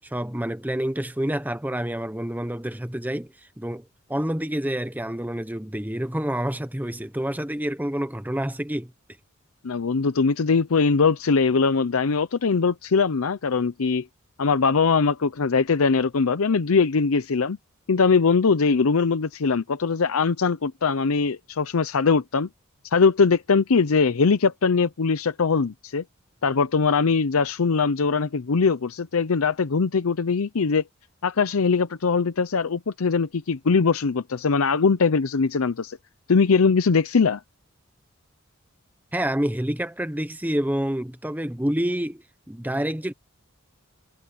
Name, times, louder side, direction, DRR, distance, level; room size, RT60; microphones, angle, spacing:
voice 1, 0.0-8.9 39.1-43.1, right 1 dB, 10° right, 1.1 m, -28 dB
voice 2, 9.6-14.0 14.4-17.6 17.9-22.5 22.9-26.0 26.4-30.8 31.2-36.0 36.3-37.4, left 5 dB, 90° left, 0.6 m, -21 dB
head